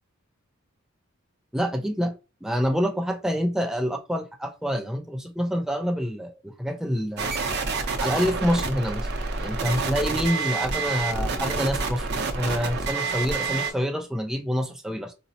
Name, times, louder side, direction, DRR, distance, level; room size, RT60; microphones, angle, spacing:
voice 1, 1.5-2.2 2.4-7.3 8.0-9.1 9.4-12.1 12.3-15.1, equal, 5° right, 0.4 m, -27 dB
sound 1, 7.2-13.7, right 4 dB, 55° right, 0.6 m, -28 dB
4.0 x 2.0 x 2.7 m
head